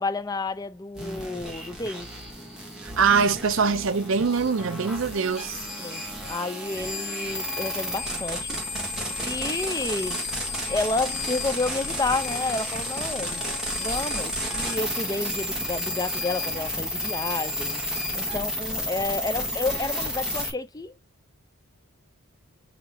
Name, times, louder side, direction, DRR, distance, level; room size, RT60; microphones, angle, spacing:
voice 1, 0.0-2.1 5.8-10.2 10.7-13.4 13.8-17.8 18.1-20.9, left 3 dB, 15° left, 0.5 m, -30 dB
sound 1, 0.9-20.5, left 1 dB, 5° right, 1.3 m, -31 dB
voice 2, 2.8-5.7, right 5 dB, 60° right, 0.5 m, -23 dB
6.0 x 2.9 x 2.7 m
head